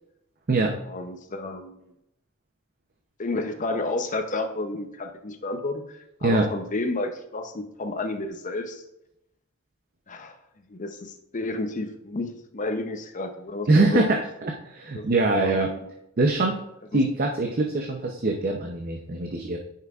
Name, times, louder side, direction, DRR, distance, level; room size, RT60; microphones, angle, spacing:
voice 1, 0.9-1.8 3.2-8.8 10.1-10.4 10.7-14.1 14.9-15.9 16.9-17.0, left 2 dB, 35° left, 7 dB, 0.7 m, -31 dB
voice 2, 13.7-15.7 16.2-16.6 16.9-19.6, right 2 dB, 45° right, 2 dB, 0.6 m, -23 dB
9.3 x 5.7 x 2.4 m, 0.83 s
head